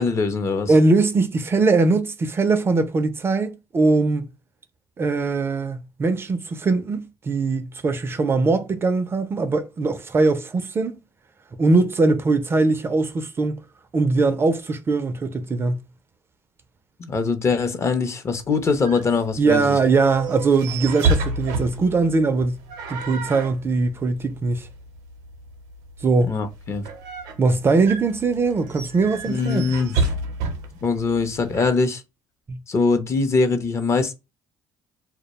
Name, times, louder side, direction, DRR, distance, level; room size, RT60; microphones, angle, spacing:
voice 1, 0.0-0.7 17.0-19.8 26.2-26.8 29.3-30.0 30.8-32.0 32.7-34.1, left 4 dB, 35° left, 0.6 m, -22 dB
voice 2, 0.7-4.3 5.0-11.0 11.6-13.6 13.9-15.8 19.4-22.6 22.9-24.7 26.0-26.3 27.4-29.6 32.5-32.6, right 3 dB, 30° right, 0.4 m, -21 dB
sound 1, 18.3-31.7, right 3 dB, 90° right, 0.6 m, -30 dB
2.2 x 2.1 x 2.9 m
supercardioid pair, 90°, 8 cm